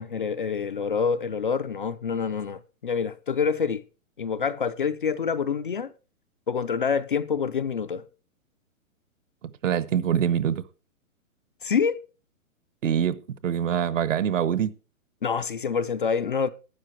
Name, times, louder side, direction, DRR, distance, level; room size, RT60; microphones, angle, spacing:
voice 1, 0.0-3.8 4.2-5.9 6.5-8.0 11.6-12.0 15.2-16.5, left 6 dB, 40° left, 0.4 m, -26 dB
voice 2, 9.4-10.6 12.8-14.7, right 9 dB, 65° right, 1.0 m, -25 dB
12.0 x 8.9 x 4.4 m
hypercardioid pair, 165°, 42 cm